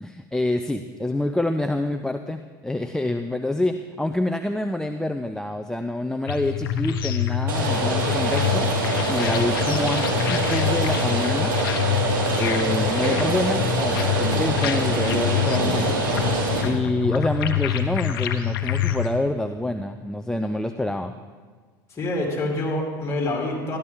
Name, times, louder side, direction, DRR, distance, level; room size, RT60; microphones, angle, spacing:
voice 1, 0.0-8.7 9.1-11.6 12.4-16.0 16.6-21.1, left 1 dB, 5° left, 7 dB, 0.5 m, -27 dB
sound 1, 6.3-19.1, left 9 dB, 75° left, 0.9 m, -26 dB
Rain, 7.5-16.6, right 3 dB, 70° right, 2.7 m, -25 dB
voice 2, 21.9-23.8, left 2 dB, 25° left, -2 dB, 3.7 m, -26 dB
13.0 x 12.0 x 3.7 m, 1.5 s
hypercardioid pair, 85°, 12 cm